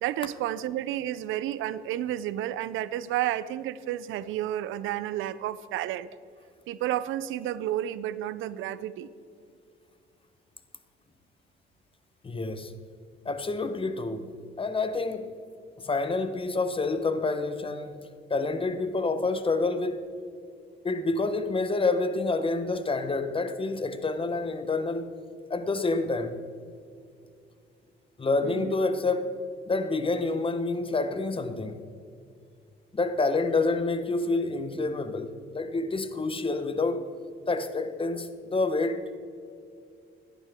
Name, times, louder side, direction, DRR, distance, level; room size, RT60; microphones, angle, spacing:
voice 1, 0.0-6.1 6.7-9.1 28.4-28.7, right 12 dB, 90° right, 0.5 m, -31 dB
voice 2, 12.2-12.7 13.2-15.4 15.8-20.0 20.8-25.1 25.5-26.4 28.2-29.3 29.7-31.8 32.9-37.0 37.5-39.2, left 3 dB, 25° left, 1.0 m, -28 dB
17.0 x 11.0 x 3.6 m
cardioid pair, 90°, 20 cm